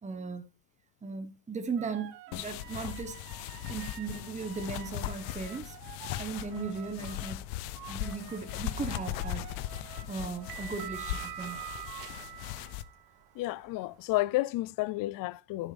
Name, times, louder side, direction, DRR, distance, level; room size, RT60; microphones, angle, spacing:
voice 1, 0.0-0.5 1.0-3.2 3.7-5.8 6.2-7.4 7.9-9.5 9.8-11.6, right 4 dB, 15° right, 1.2 m, -37 dB
sound 1, 1.8-7.4 7.7-12.0, right 13 dB, 75° right, 1.3 m, -49 dB
sound 2, 2.3-12.8, left 15 dB, 70° left, 0.8 m, -39 dB
sound 3, 9.4-14.2, right 12 dB, 45° right, 0.7 m, -46 dB
voice 2, 13.4-15.7, left 18 dB, 45° left, 0.5 m, -31 dB
10.0 x 9.0 x 3.4 m
supercardioid pair, 100°, 50 cm